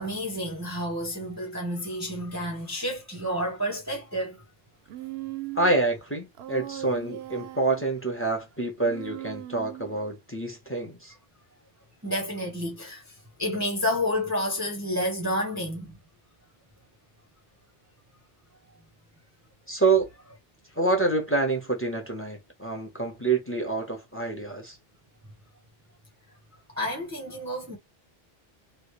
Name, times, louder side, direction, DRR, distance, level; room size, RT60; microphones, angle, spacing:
voice 1, 0.0-4.4 12.0-13.0 13.4-15.9 26.8-27.8, left 1 dB, 20° right, 0.8 m, -30 dB
Human voice, 4.9-5.8 6.4-7.9 8.8-10.1, right 15 dB, 85° right, 0.8 m, -39 dB
voice 2, 5.5-11.1 19.7-20.1 20.8-24.8, right 3 dB, 15° left, 1.0 m, -27 dB
3.2 x 2.6 x 3.1 m
omnidirectional pair, 1.0 m